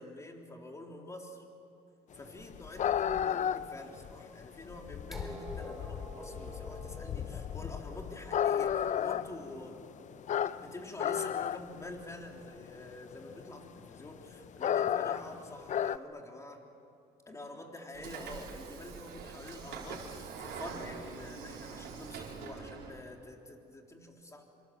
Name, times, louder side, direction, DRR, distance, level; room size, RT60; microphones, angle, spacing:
voice 1, 0.0-1.4 2.1-9.8 10.5-16.6 17.3-24.4, left 1 dB, 20° left, 2 dB, 3.6 m, -47 dB
sound 1, 2.3-16.0, left 9 dB, 45° left, 0.6 m, -34 dB
sound 2, 5.1-11.0 12.1-12.2, equal, ahead, 4.4 m, -49 dB
Train / Sliding door, 17.9-23.0, right 5 dB, 75° right, 4.3 m, -44 dB
26.0 x 25.5 x 7.7 m, 2.7 s
cardioid pair, 110°, 17 cm